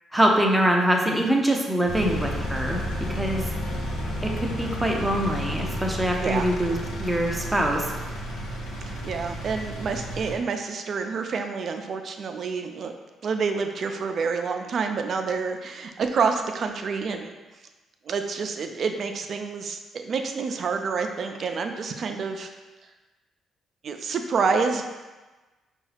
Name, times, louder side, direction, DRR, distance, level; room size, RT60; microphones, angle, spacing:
voice 1, 0.1-2.8 3.1-3.5 4.2-7.8, right 1 dB, 5° right, 0 dB, 0.6 m, -24 dB
Engine, 1.9-10.4, equal, 90° left, 0.7 m, -32 dB
voice 2, 6.2-6.5 8.9-12.9 13.2-17.3 18.1-22.5 23.8-24.8, right 5 dB, 55° right, 5 dB, 0.4 m, -28 dB
5.2 x 2.3 x 3.3 m, 1.2 s
cardioid pair, 90°, 0 cm